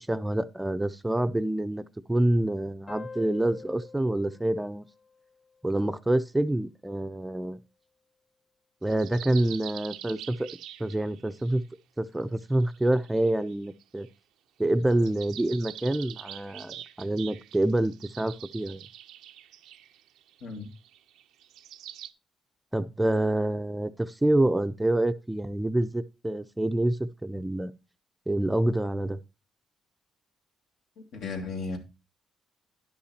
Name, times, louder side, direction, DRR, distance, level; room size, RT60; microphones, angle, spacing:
voice 1, 0.0-4.8 5.6-7.6 8.8-10.5 10.8-11.6 12.0-14.1 14.6-18.8 22.7-27.7 28.3-29.2, right 1 dB, 10° right, 0.5 m, -27 dB
sound 1, 2.9-6.0, left 4 dB, 45° left, 0.6 m, -46 dB
sound 2, 8.9-11.6 12.4-14.1 14.8-22.1, right 11 dB, 90° right, 0.5 m, -45 dB
voice 2, 20.4-20.7 31.0-31.8, left 4 dB, 75° left, 2.2 m, -35 dB
10.5 x 5.7 x 4.3 m
cardioid pair, 90°, 0 cm